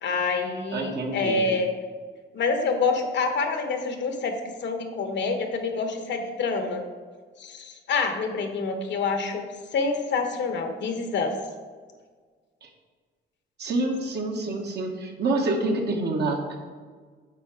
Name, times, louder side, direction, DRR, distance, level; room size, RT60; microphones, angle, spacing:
voice 1, 0.0-1.7 2.3-4.3 4.6-6.8 7.4-9.4 9.7-11.3, left 4 dB, 65° left, 5 dB, 1.1 m, -27 dB
voice 2, 0.7-1.5 12.6-12.7 13.6-16.6, right 2 dB, 60° right, 2 dB, 1.3 m, -27 dB
8.3 x 3.7 x 4.8 m, 1.5 s
cardioid pair, 90°, 20 cm